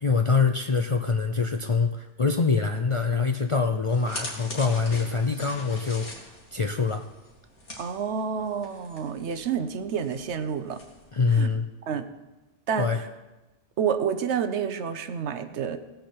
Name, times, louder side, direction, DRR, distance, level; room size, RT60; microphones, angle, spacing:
voice 1, 0.0-6.1 6.5-7.1 11.1-11.7 12.8-13.0, left 4 dB, 45° left, 6 dB, 0.4 m, -24 dB
sound 1, 3.9-11.6, left 1 dB, 80° left, 2.4 m, -43 dB
voice 2, 7.8-10.8 11.3-11.5 11.9-12.1 12.7-13.0 13.8-15.8, right 7 dB, 75° right, 10 dB, 1.1 m, -29 dB
18.0 x 7.8 x 4.4 m, 1.1 s
omnidirectional pair, 1.2 m